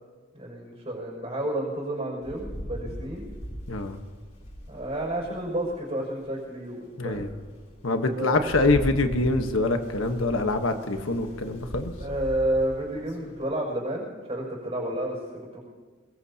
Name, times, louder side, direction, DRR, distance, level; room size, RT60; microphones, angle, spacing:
voice 1, 0.3-3.2 4.7-7.3 7.9-8.5 12.0-15.6, right 1 dB, 30° right, -5 dB, 5.6 m, -31 dB
Rain, 2.2-5.7 6.3-6.4 6.9-13.5, equal, 40° left, 3.6 m, -39 dB
voice 2, 3.7-4.0 7.0-7.3 7.8-11.9, left 2 dB, 90° left, 6 dB, 1.3 m, -25 dB
22.5 x 22.0 x 2.9 m, 1.4 s
head